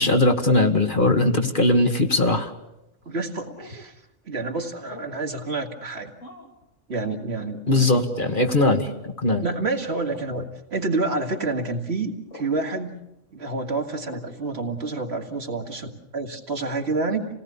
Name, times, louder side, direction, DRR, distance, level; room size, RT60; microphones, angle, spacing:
voice 1, 0.0-2.5 7.7-9.4, left 2 dB, 45° left, 5 dB, 1.7 m, -20 dB
sound 1, 1.7-2.0 3.4-3.8 4.9-5.2 6.2-6.6 7.3-7.6 8.2-8.4 9.5-9.7 10.1-10.3 11.5-11.7 12.3-12.6 14.0-14.3, left 1 dB, 80° left, 3.8 m, -44 dB
voice 2, 3.1-3.9 4.3-6.1 6.9-8.1 9.4-13.0 13.3-17.3, right 3 dB, 60° right, 3 dB, 2.3 m, -28 dB
27.5 x 18.0 x 7.1 m, 0.92 s
omnidirectional pair, 1.3 m